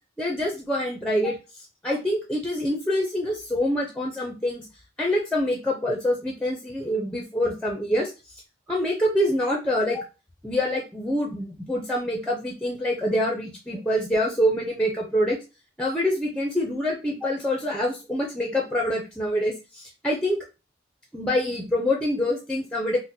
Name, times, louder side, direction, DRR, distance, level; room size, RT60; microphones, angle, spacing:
voice 1, 0.2-1.4 1.8-4.7 5.0-8.4 8.7-10.0 10.4-15.4 15.8-20.4 21.1-23.0, left 1 dB, 5° left, 0 dB, 0.4 m, -25 dB
3.7 x 2.0 x 2.7 m, 0.30 s
head